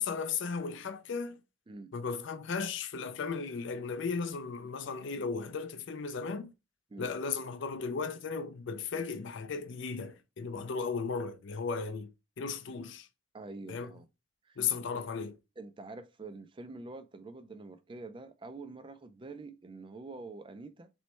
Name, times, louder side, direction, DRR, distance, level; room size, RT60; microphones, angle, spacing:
voice 1, 0.0-1.4 1.9-6.5 7.0-13.1 13.7-13.9 14.6-15.4, left 5 dB, 60° left, 0.4 m, -35 dB
voice 2, 13.3-14.1 14.4-14.9 15.6-20.9, right 3 dB, 25° right, 0.3 m, -46 dB
3.1 x 3.1 x 4.3 m
head